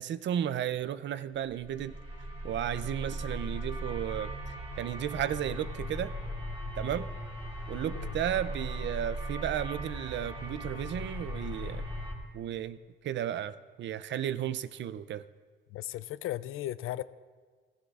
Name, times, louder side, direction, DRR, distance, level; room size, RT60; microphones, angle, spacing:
voice 1, 0.0-2.0 2.4-4.3 4.8-6.1 6.8-7.1 7.7-11.8 12.3-12.8 13.0-15.2, right 10 dB, 60° right, 14 dB, 0.5 m, -34 dB
sound 1, 1.5-12.1, equal, 25° right, 2.0 m, -38 dB
voice 2, 15.7-17.0, left 14 dB, 85° left, 16 dB, 0.4 m, -36 dB
16.5 x 15.5 x 2.4 m, 1.5 s
cardioid pair, 135°, 21 cm